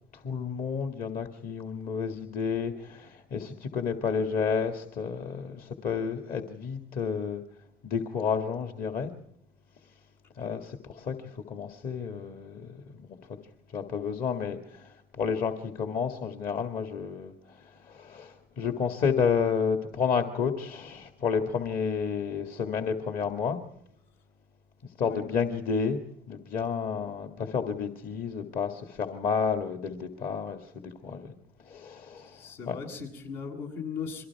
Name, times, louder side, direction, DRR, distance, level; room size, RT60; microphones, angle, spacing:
voice 1, 0.2-7.4 7.8-9.1 10.4-13.2 13.7-23.6 25.0-26.0 26.3-31.3 31.6-32.8, left 6 dB, 55° left, 5 dB, 2.0 m, -31 dB
voice 2, 32.2-34.3, left 6 dB, 85° left, 1 dB, 8.0 m, -38 dB
30.0 x 23.5 x 4.7 m, 0.74 s
cardioid pair, 110°, 17 cm